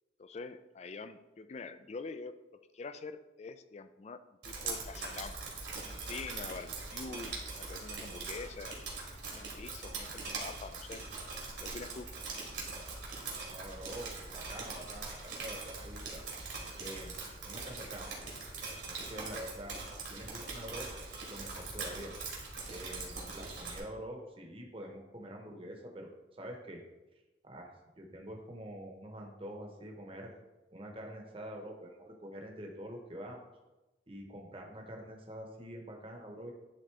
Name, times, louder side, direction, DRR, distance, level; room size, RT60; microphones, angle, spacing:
voice 1, 0.2-2.3 2.7-5.3 5.7-8.8 9.3-11.0 11.6-12.1, left 4 dB, 35° left, 12 dB, 0.3 m, -45 dB
Drip, 4.4-23.8, right 3 dB, 75° right, 2.2 m, -42 dB
voice 2, 13.5-16.2 16.8-17.1 17.5-18.1 18.8-19.8 20.1-20.9 21.3-22.1 22.7-26.8 27.4-27.7 28.0-30.3 30.7-33.4 34.1-36.5, equal, 30° right, 1 dB, 1.0 m, -46 dB
11.0 x 3.8 x 3.3 m, 1.1 s
head